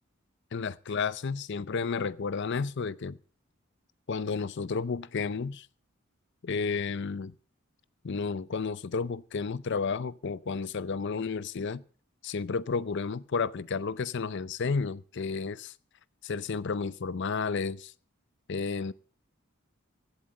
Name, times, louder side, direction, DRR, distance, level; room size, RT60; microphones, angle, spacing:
voice 1, 0.5-3.2 4.1-5.7 6.4-7.3 8.0-11.8 12.2-15.7 16.2-17.9 18.5-18.9, left 5 dB, 55° left, 0.5 m, -32 dB
15.5 x 8.2 x 6.4 m
head